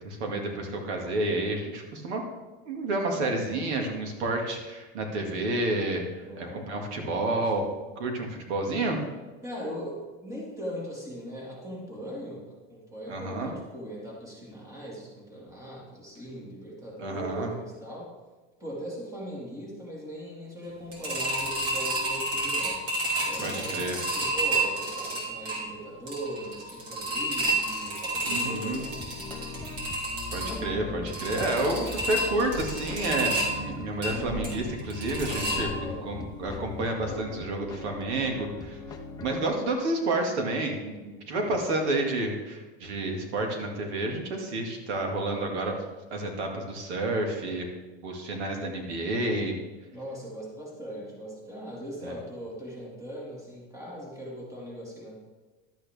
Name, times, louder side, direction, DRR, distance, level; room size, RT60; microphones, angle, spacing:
voice 1, 0.0-2.2 2.7-7.7 8.0-9.0 13.1-13.5 17.0-17.5 23.4-24.0 28.3-28.8 30.3-38.8 39.2-45.7 46.1-47.7 48.0-49.6 52.0-52.1, right 2 dB, 80° right, 2 dB, 2.2 m, -30 dB
voice 2, 6.2-7.4 9.4-18.1 18.6-22.8 23.3-29.1 35.5-36.2 49.9-55.2, equal, 10° right, -3 dB, 2.2 m, -40 dB
sound 1, 20.9-36.1 36.5-36.6 36.9-37.0, right 1 dB, 45° right, 3.2 m, -31 dB
sound 2, 28.7-39.4, left 3 dB, 10° left, 0.6 m, -40 dB
12.0 x 8.5 x 3.5 m, 1.2 s
supercardioid pair, 160°, 33 cm